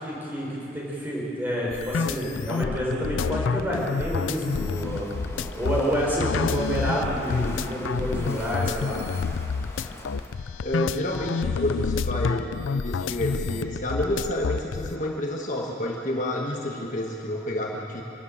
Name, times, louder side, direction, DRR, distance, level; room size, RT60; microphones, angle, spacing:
voice 1, 0.0-5.1 5.5-9.0, equal, 10° right, -5 dB, 5.0 m, -28 dB
sound 1, 1.7-14.9, left 5 dB, 90° left, 0.5 m, -29 dB
Walk footsteps / Wind / Waves surf, 3.8-10.4, left 1 dB, 15° left, 1.6 m, -40 dB
voice 2, 10.6-18.0, left 1 dB, 40° left, -1 dB, 1.5 m, -29 dB
25.0 x 13.0 x 8.8 m, 3.0 s
head